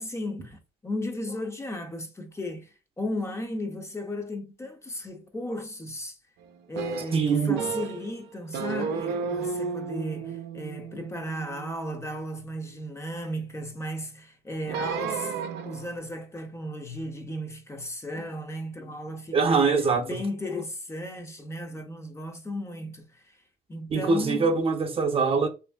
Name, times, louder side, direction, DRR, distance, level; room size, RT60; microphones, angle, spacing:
voice 1, 0.0-6.2 6.7-15.4 15.6-19.6 20.0-23.4 23.7-24.6, left 1 dB, 15° left, 0.5 m, -35 dB
sound 1, 6.8-8.1 8.5-12.8 14.6-16.0, right 6 dB, 85° right, 0.4 m, -33 dB
voice 2, 7.1-7.6 19.3-20.1 23.9-25.5, right 4 dB, 35° right, 0.6 m, -23 dB
3.1 x 2.5 x 2.2 m
cardioid pair, 110°, 17 cm